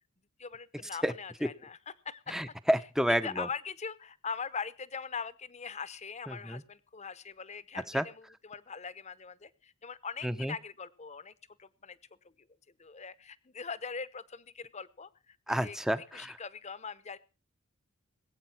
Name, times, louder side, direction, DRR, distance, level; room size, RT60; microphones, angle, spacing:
voice 1, 0.4-2.3 3.2-11.3 11.6-12.0 12.8-17.2, left 5 dB, 30° left, 16 dB, 0.8 m, -41 dB
voice 2, 2.3-3.5 6.3-6.6 7.9-8.1 10.2-10.5 15.5-16.3, equal, ahead, 12 dB, 0.7 m, -30 dB
20.0 x 8.8 x 5.8 m, 0.34 s
head